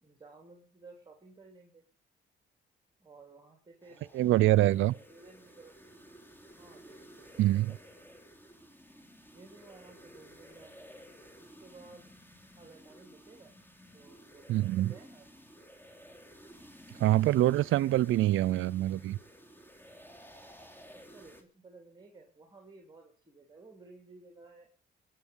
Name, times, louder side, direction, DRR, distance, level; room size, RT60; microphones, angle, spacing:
voice 1, 0.0-1.8 3.0-5.8 6.6-7.8 8.9-10.9 11.4-12.1 12.5-13.5 13.9-15.3 21.0-24.7, right 3 dB, 20° right, 3.2 m, -55 dB
sound 1, 3.8-21.4, equal, 10° left, 3.1 m, -54 dB
voice 2, 4.1-4.9 7.4-7.7 14.5-14.9 17.0-19.2, right 15 dB, 80° right, 0.6 m, -25 dB
21.5 x 7.9 x 5.4 m
cardioid pair, 90°, 20 cm